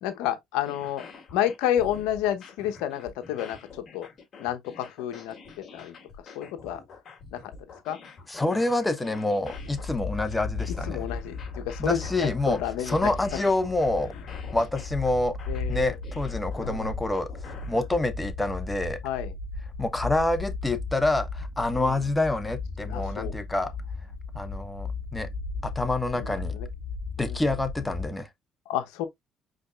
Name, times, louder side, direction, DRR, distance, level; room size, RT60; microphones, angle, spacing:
voice 1, 0.0-1.0 1.3-4.1 4.4-5.3 5.7-6.0 6.3-6.8 7.3-7.4 7.8-8.0 9.7-9.8 10.8-13.1 15.5-16.0 16.6-16.9 19.0-19.3 21.8-22.0 22.9-23.3 26.1-26.7 27.2-27.4 28.7-29.1, left 11 dB, 90° left, 0.8 m, -30 dB
sound 1, 0.7-17.9, left 5 dB, 50° left, 2.7 m, -46 dB
voice 2, 8.3-11.1 11.8-12.6 12.9-14.1 14.5-15.4 15.7-17.3 17.7-19.0 19.8-23.7 24.3-25.3 25.6-26.5 27.2-28.3, left 2 dB, 15° left, 1.0 m, -27 dB
sound 2, 9.5-28.1, left 4 dB, 70° left, 2.6 m, -36 dB
5.1 x 4.1 x 2.4 m
supercardioid pair, 75°, 0 cm